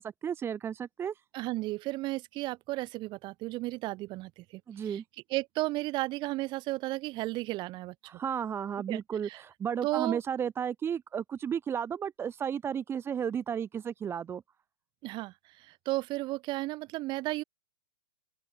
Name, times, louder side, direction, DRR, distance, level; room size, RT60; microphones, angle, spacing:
voice 1, 0.0-1.2 4.7-5.0 8.1-14.4, right 8 dB, 15° right, 1.9 m, -33 dB
voice 2, 1.3-5.0 5.3-7.9 8.9-9.4 9.8-10.2 15.0-17.4, right 19 dB, 35° right, 4.1 m, -34 dB
open air
hypercardioid pair, 140°, 14 cm